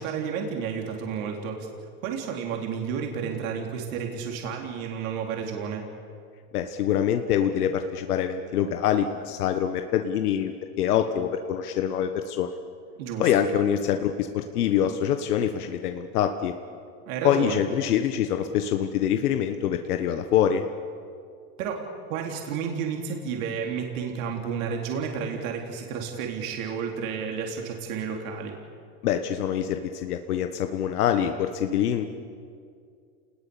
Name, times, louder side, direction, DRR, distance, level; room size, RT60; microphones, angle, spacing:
voice 1, 0.0-1.7 2.0-5.8 13.0-13.3 17.1-17.6 21.6-28.6, right 6 dB, 65° right, 1 dB, 3.9 m, -31 dB
voice 2, 6.5-10.5 10.8-12.5 13.2-16.5 17.2-20.6 29.0-32.1, left 9 dB, 80° left, 6 dB, 1.5 m, -25 dB
29.5 x 20.0 x 7.1 m, 2.3 s
supercardioid pair, 145°, 45 cm